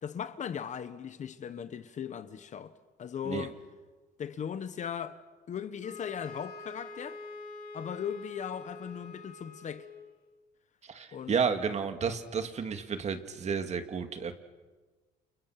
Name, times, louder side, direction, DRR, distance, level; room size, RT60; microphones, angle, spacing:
voice 1, 0.0-2.7 3.0-3.5 4.2-5.2 5.5-7.2 7.7-9.9 11.1-11.4, left 8 dB, 45° left, 1.3 m, -38 dB
sound 1, 5.8-10.2, left 3 dB, 60° left, 7.4 m, -46 dB
voice 2, 10.8-14.3, right 6 dB, 40° right, 2.3 m, -32 dB
30.0 x 29.5 x 6.0 m
cardioid pair, 110°, 17 cm